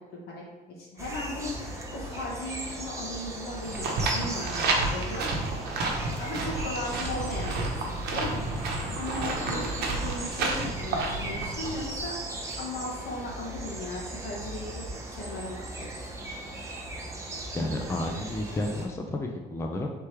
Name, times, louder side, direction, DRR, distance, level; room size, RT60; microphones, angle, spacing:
voice 1, 0.1-0.5 0.8-5.3 6.2-7.7 8.1-8.3 9.0-14.8 15.1-16.1, left 1 dB, 75° left, -3 dB, 1.4 m, -37 dB
sound 1, 1.0-18.9, right 1 dB, 15° right, 0.9 m, -38 dB
sound 2, 3.6-12.0, right 2 dB, 70° right, 0.8 m, -31 dB
voice 2, 17.5-19.9, left 1 dB, 15° left, 2 dB, 0.4 m, -31 dB
3.5 x 3.1 x 4.4 m, 1.3 s
cardioid pair, 110°, 17 cm